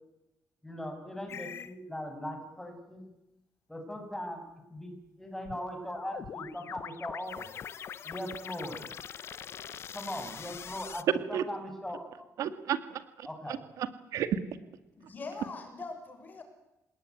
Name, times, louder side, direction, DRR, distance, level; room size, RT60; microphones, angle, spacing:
voice 1, 0.6-3.0 3.7-4.4 4.7-7.5 8.0-8.8 9.9-12.3 13.2-13.6, equal, 5° left, 4 dB, 6.8 m, -39 dB
sound 1, 1.3-1.7 5.4-11.0, left 8 dB, 50° left, 1.0 m, -43 dB
voice 2, 12.4-14.4, right 9 dB, 80° right, 12 dB, 1.9 m, -33 dB
voice 3, 14.9-16.4, left 3 dB, 35° left, 6 dB, 6.2 m, -42 dB
28.0 x 18.5 x 9.8 m, 0.93 s
cardioid pair, 145°, 5 cm